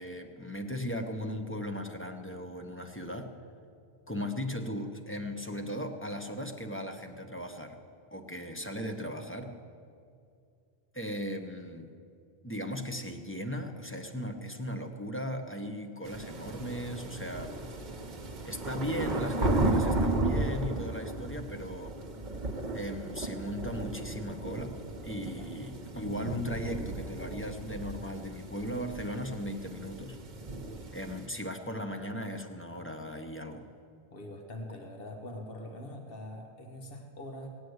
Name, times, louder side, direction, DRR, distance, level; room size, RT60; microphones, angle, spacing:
voice 1, 0.0-3.3 4.1-7.8 8.1-9.5 10.9-11.9 12.4-17.6 18.4-21.9 22.7-24.8 25.0-30.2 30.9-33.7, equal, 10° left, 4 dB, 1.0 m, -37 dB
sound 1, 16.0-31.3, right 2 dB, 45° right, 1.2 m, -34 dB
voice 2, 34.1-37.5, left 1 dB, 60° left, 2 dB, 1.7 m, -43 dB
18.5 x 8.6 x 8.0 m, 2.4 s
omnidirectional pair, 1.1 m